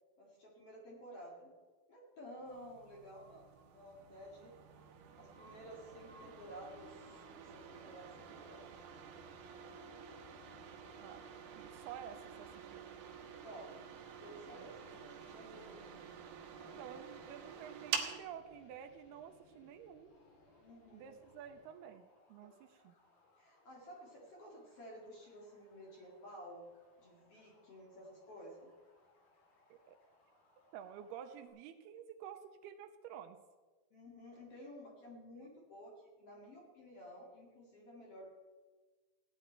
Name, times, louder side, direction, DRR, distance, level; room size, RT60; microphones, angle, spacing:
voice 1, 0.2-1.5 1.9-4.5 5.2-8.7 13.4-15.8 16.5-17.0 20.6-21.2 23.4-26.7 27.0-28.7 33.9-38.3, equal, 45° left, -2 dB, 2.3 m, -53 dB
sound 1, 2.5-18.2, right 7 dB, 65° right, 2.1 m, -48 dB
sound 2, 3.2-21.7, left 3 dB, 85° left, 5.2 m, -65 dB
voice 2, 11.6-12.9 14.5-14.7 16.8-20.1 20.9-22.9 29.7-30.0 30.7-33.4, right 9 dB, 85° right, 7 dB, 2.5 m, -51 dB
sound 3, 20.1-31.5, left 1 dB, 65° left, 4.7 m, -71 dB
16.0 x 10.0 x 4.5 m, 1.3 s
omnidirectional pair, 4.8 m